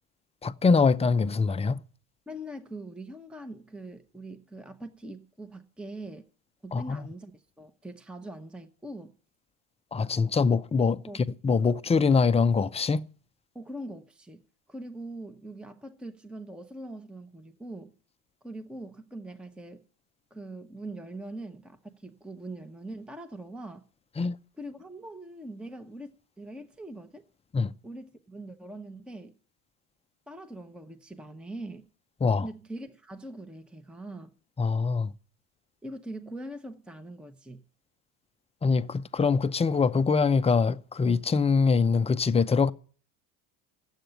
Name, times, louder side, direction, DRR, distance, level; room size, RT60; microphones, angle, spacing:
voice 1, 0.4-1.8 6.7-7.0 9.9-11.0 11.4-13.0 24.2-24.4 27.5-27.7 32.2-32.5 34.6-35.1 38.6-42.7, left 5 dB, 15° left, 0.5 m, -23 dB
voice 2, 2.3-6.2 6.6-9.1 11.1-11.2 13.5-17.9 18.4-19.9 20.3-23.9 24.6-27.2 27.8-29.4 30.3-31.9 32.4-34.3 35.8-37.6, right 1 dB, ahead, 0.9 m, -42 dB
10.0 x 8.0 x 9.3 m
supercardioid pair, 105°, 44 cm